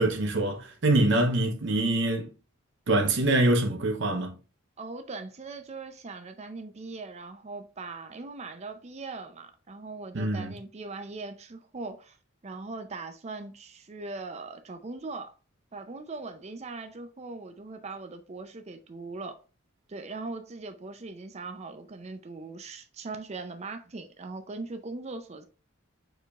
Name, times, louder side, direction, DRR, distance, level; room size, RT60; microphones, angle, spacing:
voice 1, 0.0-2.3 2.9-4.3 10.1-10.5, right 2 dB, 60° right, 0.7 m, -24 dB
voice 2, 4.8-12.2 12.4-15.3 15.7-19.4 19.9-25.5, right 3 dB, 35° right, 0.5 m, -40 dB
5.0 x 4.5 x 2.4 m
head